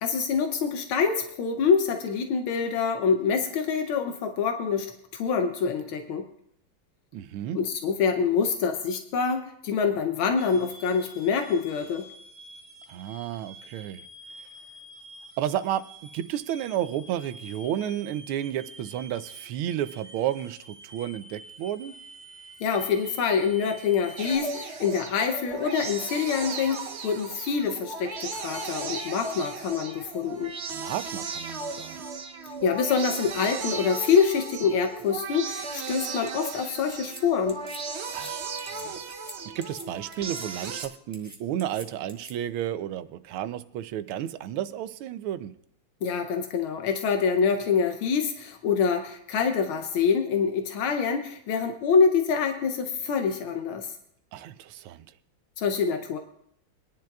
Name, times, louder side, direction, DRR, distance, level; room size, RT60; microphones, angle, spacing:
voice 1, 0.0-6.3 7.5-12.1 22.6-30.5 32.6-37.6 46.0-53.9 55.6-56.2, left 6 dB, 80° left, 6 dB, 1.6 m, -26 dB
voice 2, 7.1-7.6 12.9-14.0 15.4-15.8 16.1-21.9 30.7-32.0 38.1-38.5 38.8-39.0 39.5-45.5 54.3-55.0, right 11 dB, 90° right, 13 dB, 1.5 m, -32 dB
sound 1, 10.4-24.4, right 1 dB, 35° right, 3.2 m, -48 dB
sound 2, 24.2-40.9, right 4 dB, 65° right, 0.6 m, -36 dB
sound 3, 36.3-36.5 36.9-37.2 37.5-37.8 38.1-38.3 38.6-38.8 39.1-39.3 39.6-39.9 40.1-40.9 41.1-42.3, right 1 dB, 10° right, 1.0 m, -45 dB
24.5 x 10.5 x 2.3 m, 0.71 s
omnidirectional pair, 2.3 m